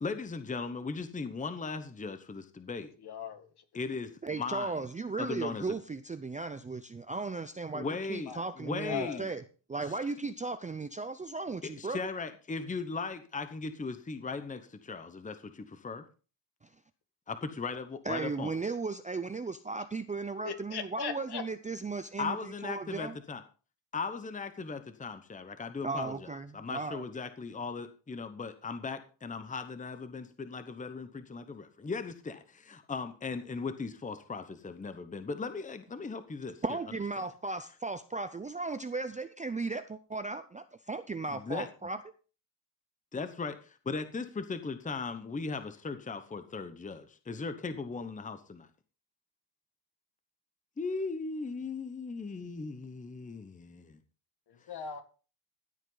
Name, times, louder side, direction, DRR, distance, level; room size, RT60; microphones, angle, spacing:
voice 1, 0.0-2.9 3.7-4.9 5.2-5.8 7.7-9.3 11.6-16.0 17.3-18.5 22.2-23.4 23.9-26.3 26.5-37.0 41.3-41.7 43.1-48.7 50.8-54.0, left 4 dB, 15° left, 10 dB, 1.0 m, -38 dB
voice 2, 3.0-3.5 8.3-8.4 8.8-9.2 20.4-21.4 54.7-55.0, left 7 dB, 50° left, 8 dB, 2.0 m, -38 dB
voice 3, 4.2-9.4 9.7-12.0 18.1-23.2 25.8-27.1 36.6-42.0, right 3 dB, 15° right, 10 dB, 0.5 m, -36 dB
14.5 x 8.2 x 3.9 m, 0.37 s
cardioid pair, 120°, 49 cm